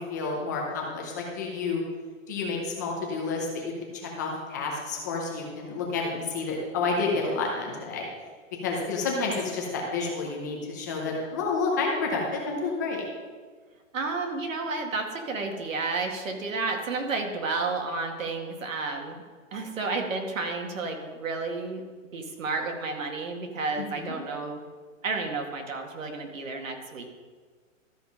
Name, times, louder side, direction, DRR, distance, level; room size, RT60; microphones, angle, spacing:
voice 1, 0.0-1.8 2.3-8.1 8.6-13.0 23.8-24.1, left 4 dB, 15° left, -1 dB, 0.7 m, -30 dB
voice 2, 13.9-19.2 19.5-21.8 22.1-24.6 25.0-27.0, right 3 dB, 75° right, 3 dB, 1.9 m, -31 dB
13.0 x 5.1 x 5.2 m, 1.5 s
hypercardioid pair, 170°, 40 cm